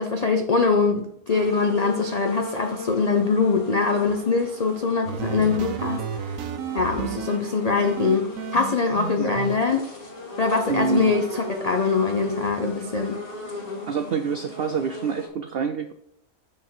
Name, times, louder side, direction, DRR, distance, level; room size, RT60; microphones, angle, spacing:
voice 1, 0.0-6.0 6.7-9.9 10.4-13.2, left 4 dB, 85° left, 4 dB, 0.3 m, -23 dB
sound 1, 1.3-15.3, left 2 dB, 40° left, 1.9 m, -37 dB
sound 2, 5.1-7.4 7.8-9.6, right 8 dB, 65° right, 1.0 m, -31 dB
voice 2, 10.7-11.1 13.9-15.9, right 6 dB, 90° right, 8 dB, 0.5 m, -27 dB
6.3 x 6.2 x 4.3 m, 0.72 s
omnidirectional pair, 1.6 m